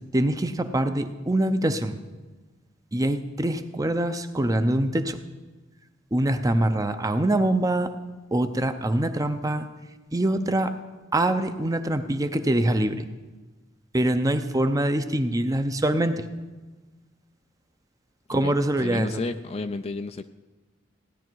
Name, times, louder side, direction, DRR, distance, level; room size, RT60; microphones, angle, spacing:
voice 1, 0.1-2.0 2.9-5.2 6.1-7.9 8.3-9.7 10.1-10.7 11.1-13.1 13.9-16.2 18.3-19.2, right 1 dB, 15° right, 9 dB, 0.6 m, -24 dB
voice 2, 18.8-20.3, left 3 dB, 30° left, 9 dB, 0.4 m, -32 dB
16.5 x 10.5 x 4.6 m, 1.2 s
head